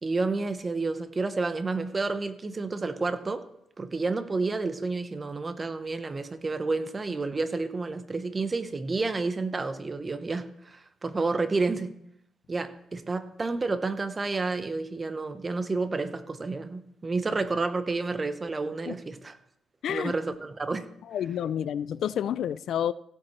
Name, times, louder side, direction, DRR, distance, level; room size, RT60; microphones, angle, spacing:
voice 1, 0.0-3.4 3.8-11.9 12.5-19.4 19.9-20.8, right 3 dB, 30° right, 1.0 m, -30 dB
voice 2, 21.1-22.9, left 9 dB, 70° left, 0.3 m, -29 dB
16.0 x 8.5 x 3.2 m
cardioid pair, 90°, 0 cm